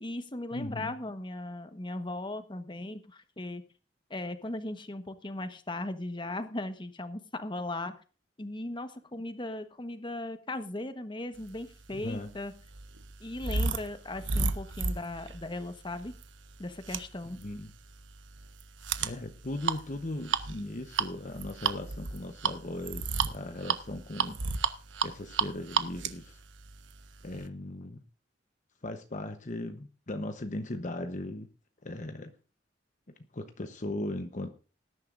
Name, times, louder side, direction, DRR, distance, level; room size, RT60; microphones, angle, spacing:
voice 1, 0.0-3.6 4.1-8.0 8.4-12.5 13.2-16.1 16.6-17.4, left 2 dB, 25° left, 10 dB, 1.2 m, -37 dB
voice 2, 0.5-0.9 11.9-12.3 17.3-17.7 19.0-24.7 25.0-26.4 27.2-28.0 28.8-31.5 31.8-32.3 33.3-34.5, left 1 dB, 40° left, 8 dB, 1.0 m, -38 dB
sound 1, 11.8-27.5, right 5 dB, 85° right, 1.0 m, -34 dB
19.0 x 10.5 x 2.6 m, 0.36 s
head